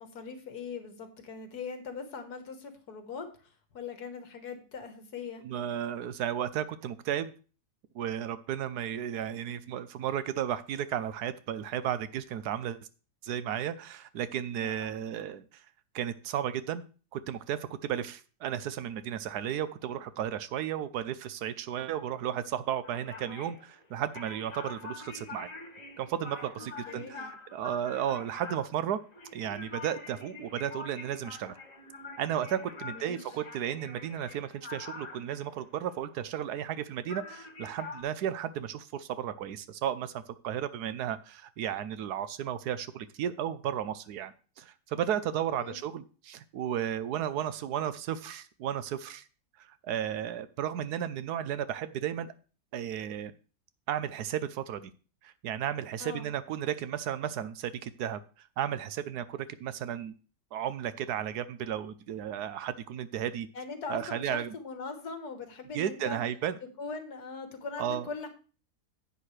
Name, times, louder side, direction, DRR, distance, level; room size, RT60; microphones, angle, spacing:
voice 1, 0.0-5.4 14.6-15.0 26.8-27.3 32.9-33.2 45.5-45.8 56.0-56.3 63.5-66.2 66.6-68.3, left 4 dB, 75° left, 7 dB, 1.9 m, -41 dB
voice 2, 5.4-7.3 7.9-12.8 13.2-15.6 15.9-16.8 17.1-25.5 26.0-29.0 29.3-31.6 32.2-49.2 49.6-52.3 52.7-53.3 53.9-54.9 55.2-60.1 60.5-63.5 63.9-64.5 65.7-66.5 67.8-68.1, right 10 dB, 75° right, 14 dB, 1.2 m, -34 dB
sound 1, 22.8-36.8 37.1-38.0, left 3 dB, 55° left, 2.9 m, -46 dB
10.0 x 8.2 x 3.3 m, 0.37 s
omnidirectional pair, 1.7 m